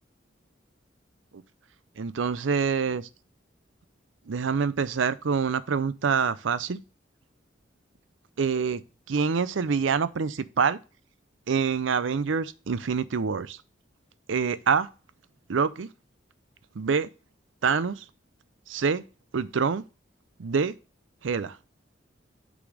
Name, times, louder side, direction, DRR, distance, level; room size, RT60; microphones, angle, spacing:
voice 1, 2.0-3.1 4.3-6.8 8.4-8.8 9.1-10.8 11.5-13.6 14.3-14.9 15.5-15.9 16.7-17.1 17.6-18.1 18.7-19.0 19.3-19.8 20.4-20.8 21.2-21.6, right 5 dB, 90° right, 0.5 m, -26 dB
6.0 x 4.1 x 4.8 m
head